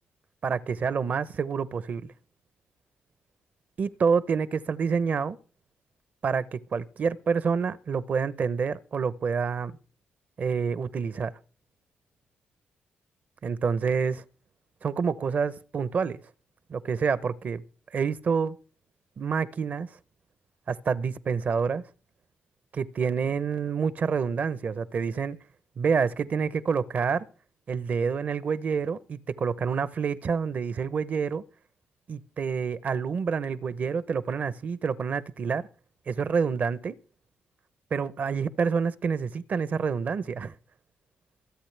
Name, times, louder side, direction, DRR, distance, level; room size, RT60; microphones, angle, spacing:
voice 1, 0.4-2.1 3.8-5.4 6.2-9.7 10.4-11.3 13.4-14.2 14.8-16.2 16.7-17.6 17.9-18.6 19.2-19.9 20.7-21.8 22.7-25.4 25.8-27.3 27.7-31.4 32.1-35.7 36.1-36.9 37.9-40.5, right 6 dB, 45° right, 0.8 m, -28 dB
25.5 x 8.6 x 3.3 m
cardioid pair, 130°, 4 cm